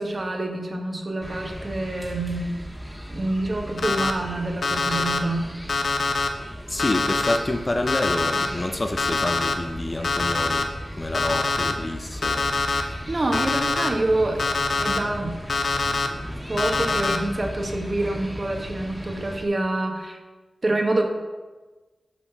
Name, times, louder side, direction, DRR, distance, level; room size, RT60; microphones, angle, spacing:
voice 1, 0.0-2.5 3.1-5.5 12.7-14.4 14.8-15.4 16.5-20.2 20.6-21.0, right 2 dB, 40° right, 1.4 m, -26 dB
sound 1, 1.2-19.4, equal, 5° right, 1.5 m, -37 dB
Alarm, 3.8-4.1 4.6-5.2 5.7-6.3 6.8-7.4 7.9-8.5 9.0-9.5 10.0-10.6 11.1-11.7 12.2-12.8 13.3-13.9 14.4-15.0 15.5-16.1 16.6-17.2, left 3 dB, 60° left, 0.8 m, -24 dB
voice 2, 6.7-12.5, left 2 dB, 30° left, 0.6 m, -28 dB
7.3 x 5.2 x 6.0 m
wide cardioid pair, 70°, 0 cm